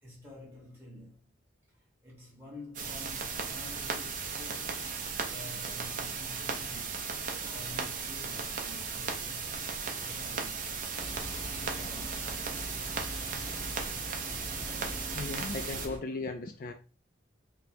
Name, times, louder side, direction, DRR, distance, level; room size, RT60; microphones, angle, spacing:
voice 1, 0.0-1.3 1.7-4.8 5.2-10.8 11.3-12.6, left 1 dB, 10° right, 1.4 m, -50 dB
sound 1, 2.7-15.9, right 5 dB, 40° right, 0.6 m, -36 dB
sound 2, 11.0-16.0, equal, 10° left, 0.7 m, -42 dB
voice 2, 15.1-16.7, left 3 dB, 45° left, 0.3 m, -37 dB
4.3 x 2.2 x 2.8 m
head